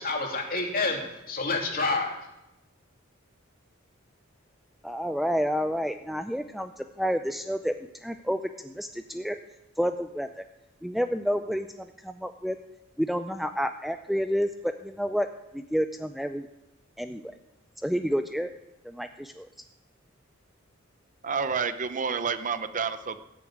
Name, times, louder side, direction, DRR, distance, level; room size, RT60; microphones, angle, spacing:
voice 1, 0.0-2.2, left 3 dB, 45° left, 1 dB, 3.0 m, -28 dB
voice 2, 4.8-7.7 8.0-9.4 9.8-10.4 10.8-12.6 13.0-15.3 15.5-16.5 17.0-17.2 17.8-18.5 18.8-19.5, equal, ahead, 7 dB, 0.4 m, -29 dB
voice 3, 21.2-23.2, right 5 dB, 40° right, 11 dB, 0.6 m, -29 dB
18.0 x 7.1 x 8.7 m, 0.92 s
head